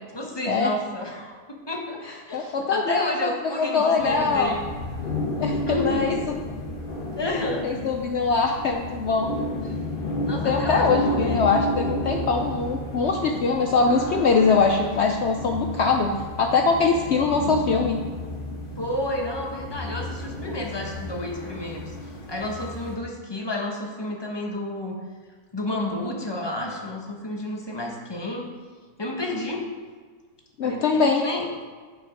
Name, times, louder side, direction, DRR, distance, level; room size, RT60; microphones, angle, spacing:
voice 1, 0.1-4.6 5.7-6.2 7.1-7.7 10.2-11.5 18.8-25.0 25.5-28.5 29.0-29.7 30.6-31.5, left 1 dB, 20° left, 0 dB, 0.9 m, -31 dB
voice 2, 2.3-3.3 3.7-4.5 5.4-6.2 7.3-9.3 10.4-18.0 30.6-31.2, left 4 dB, 65° left, 3 dB, 0.7 m, -22 dB
sound 1, 4.0-23.0, left 1 dB, 40° left, 1.1 m, -31 dB
7.3 x 5.8 x 5.1 m, 1.5 s
omnidirectional pair, 1.6 m